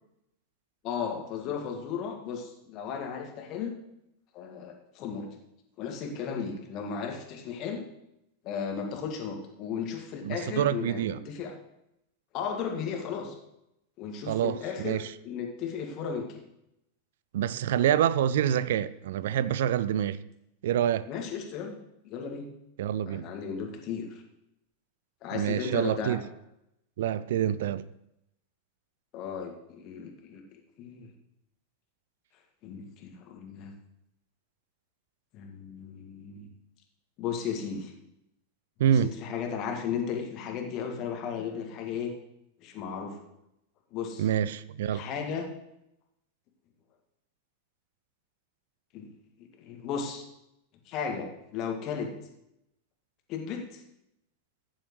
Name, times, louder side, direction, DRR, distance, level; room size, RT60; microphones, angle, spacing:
voice 1, 0.8-3.7 4.3-5.3 5.8-7.8 8.4-11.5 12.3-13.4 14.0-16.4 21.1-21.8 22.0-22.5 23.1-24.2 25.2-26.2 29.1-31.1 32.6-33.7 35.3-36.5 37.2-37.9 39.0-42.1 42.6-43.2 43.9-44.2 44.9-45.5 48.9-49.1 49.4-50.2 50.9-52.1 53.3-53.8, left 6 dB, 40° left, 2.0 m, -35 dB
voice 2, 10.2-11.2 14.3-15.1 17.3-20.2 20.6-21.1 22.8-23.2 25.3-26.2 27.0-27.9 38.8-39.1 44.2-45.0, right 10 dB, 55° right, 0.5 m, -27 dB
15.5 x 10.5 x 3.2 m
figure-of-eight pair, 90°, 0 cm